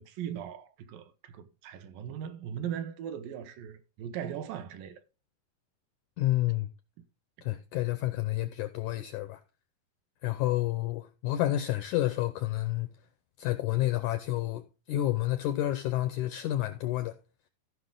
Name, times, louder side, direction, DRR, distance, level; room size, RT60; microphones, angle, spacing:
voice 1, 0.0-5.0, right 9 dB, 75° right, 2.4 m, -39 dB
voice 2, 6.2-6.7 7.4-9.4 10.2-12.9 13.4-14.6 14.9-17.2, left 15 dB, 85° left, 1.7 m, -29 dB
15.5 x 5.6 x 3.8 m
omnidirectional pair, 4.2 m